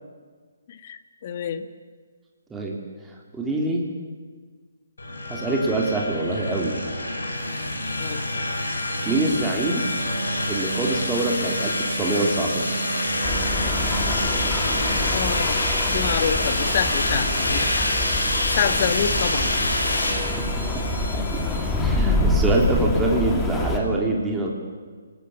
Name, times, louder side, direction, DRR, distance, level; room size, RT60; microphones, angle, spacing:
voice 1, 0.7-1.7 8.0-8.2 15.1-17.9 18.6-19.5, left 8 dB, 40° left, 9 dB, 1.6 m, -27 dB
voice 2, 3.3-3.8 5.3-6.8 9.0-9.9 10.5-12.9 20.4-21.5 21.8-24.5, right 2 dB, 10° right, -1 dB, 3.2 m, -25 dB
sound 1, 5.0-21.8, left 1 dB, 65° left, 6.7 m, -26 dB
sound 2, 8.9-15.1, right 5 dB, 50° right, 5.8 m, -34 dB
Rain, 13.2-23.8, left 2 dB, 10° left, 2.7 m, -26 dB
28.0 x 20.0 x 7.0 m, 1.5 s
figure-of-eight pair, 135°, 0 cm